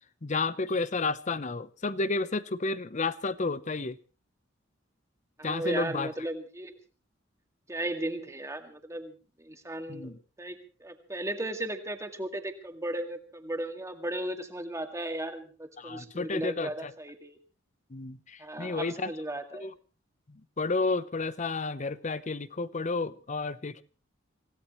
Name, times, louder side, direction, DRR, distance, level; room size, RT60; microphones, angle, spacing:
voice 1, 0.2-4.0 5.4-6.1 9.9-10.2 15.8-16.9 17.9-19.1 19.6-19.7 20.3-23.8, left 3 dB, 40° left, 16 dB, 0.7 m, -31 dB
voice 2, 5.4-6.8 7.7-9.1 9.4-10.1 10.4-17.4 18.4-19.7, right 1 dB, 15° right, 5 dB, 2.0 m, -36 dB
25.5 x 17.0 x 3.1 m, 0.36 s
head